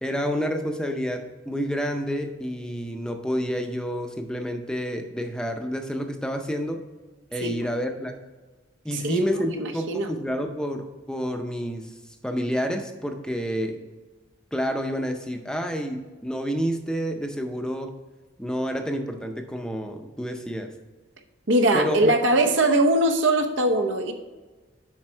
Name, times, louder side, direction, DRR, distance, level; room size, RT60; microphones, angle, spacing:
voice 1, 0.0-6.8 7.3-8.2 8.8-11.9 12.2-13.8 14.5-18.0 18.4-20.7 21.7-22.1, equal, 5° left, 5 dB, 0.5 m, -29 dB
voice 2, 8.9-10.1 21.5-24.1, right 1 dB, 80° right, 4 dB, 0.9 m, -21 dB
7.6 x 5.2 x 4.5 m, 1.2 s
head